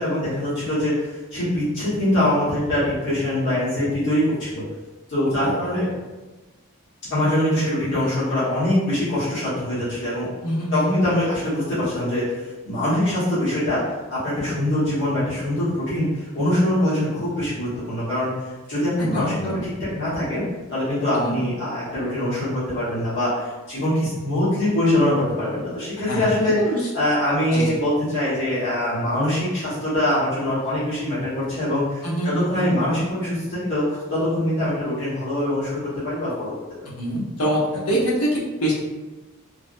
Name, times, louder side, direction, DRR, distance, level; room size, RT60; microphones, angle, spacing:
voice 1, 0.0-4.6 5.1-5.9 7.1-10.2 10.7-12.2 12.6-13.8 14.1-18.3 18.7-20.4 20.7-26.6 26.9-36.5, left 1 dB, 55° left, -12 dB, 1.2 m, -23 dB
voice 2, 5.4-5.9 10.4-11.0 19.0-19.6 21.1-21.4 26.0-26.8 27.5-27.8 32.0-32.7 37.0-38.7, equal, 85° left, -5 dB, 0.9 m, -25 dB
3.3 x 2.2 x 2.5 m, 1.1 s
head